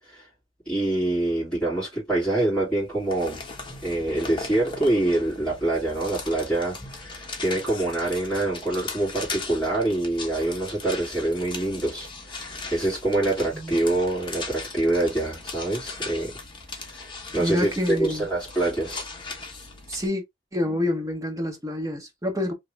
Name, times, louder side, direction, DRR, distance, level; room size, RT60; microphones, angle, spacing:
voice 1, 0.7-3.4 3.8-16.3 16.9-19.1, right 2 dB, 5° left, 2.5 m, -25 dB
sound 1, 2.8-20.1, left 3 dB, 25° left, 1.0 m, -38 dB
voice 2, 17.4-18.3 19.9-20.2 20.5-22.5, left 1 dB, 15° right, 1.0 m, -27 dB
3.7 x 2.9 x 3.2 m
head